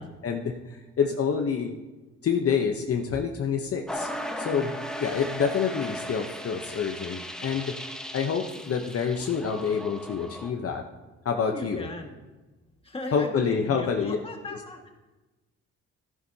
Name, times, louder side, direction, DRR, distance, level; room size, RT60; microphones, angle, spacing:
voice 1, 0.2-1.7 2.2-4.7 5.0-7.7 8.1-10.8 11.2-11.9 13.1-14.2, left 6 dB, 50° left, 3 dB, 0.9 m, -27 dB
sound 1, 3.9-10.5, equal, ahead, 1.1 m, -37 dB
voice 2, 4.5-4.8 11.4-12.2 12.8-14.9, left 1 dB, 20° left, 2 dB, 1.8 m, -37 dB
13.5 x 10.5 x 2.8 m, 1.2 s
cardioid pair, 90°, 30 cm